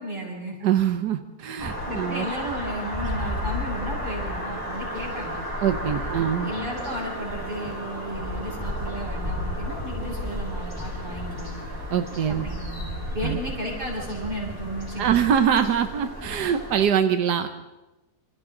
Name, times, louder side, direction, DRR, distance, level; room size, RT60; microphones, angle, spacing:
voice 1, 0.0-0.6 1.8-5.4 5.9-11.6 12.3-12.9 13.1-15.2, equal, 30° right, -4 dB, 8.0 m, -34 dB
voice 2, 0.6-2.3 5.6-6.5 11.9-12.5 13.2-13.4 15.0-17.5, right 8 dB, 90° right, 8 dB, 1.6 m, -23 dB
sound 1, 1.6-16.9, equal, 15° right, 4.9 m, -33 dB
27.5 x 27.0 x 3.9 m, 1.0 s
omnidirectional pair, 1.7 m